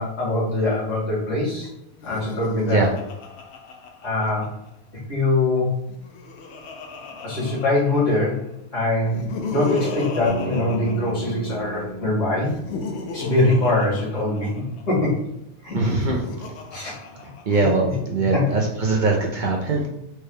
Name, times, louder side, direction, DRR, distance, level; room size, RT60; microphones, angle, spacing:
voice 1, 0.0-1.7 2.0-2.8 4.0-4.5 5.1-5.7 7.2-8.4 8.7-12.6 13.1-14.5 14.9-15.2 15.6-15.9 16.7-16.9 17.5-17.9 18.3-18.6, left 2 dB, 90° left, -6 dB, 2.1 m, -23 dB
Laughter, 1.9-4.7 5.8-8.4 9.0-11.8 12.4-14.8 15.7-17.8, left 3 dB, 65° left, 0.8 m, -34 dB
Bass guitar, 10.3-14.2, equal, 35° left, 1.1 m, -35 dB
voice 2, 15.7-16.2 17.5-19.9, right 3 dB, 50° right, -1 dB, 0.6 m, -21 dB
4.5 x 2.2 x 3.3 m, 0.84 s
omnidirectional pair, 1.3 m